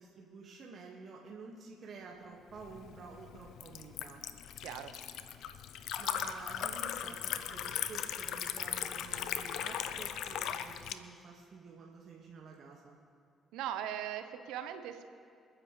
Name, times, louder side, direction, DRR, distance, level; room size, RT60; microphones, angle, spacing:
voice 1, 0.0-4.2 5.7-13.0, right 4 dB, 55° right, -2 dB, 2.0 m, -50 dB
Liquid, 2.6-10.9, left 9 dB, 70° left, 0.7 m, -38 dB
voice 2, 13.5-15.1, right 10 dB, 75° right, 8 dB, 1.1 m, -39 dB
29.0 x 10.0 x 3.4 m, 2.3 s
hypercardioid pair, 45°, 0 cm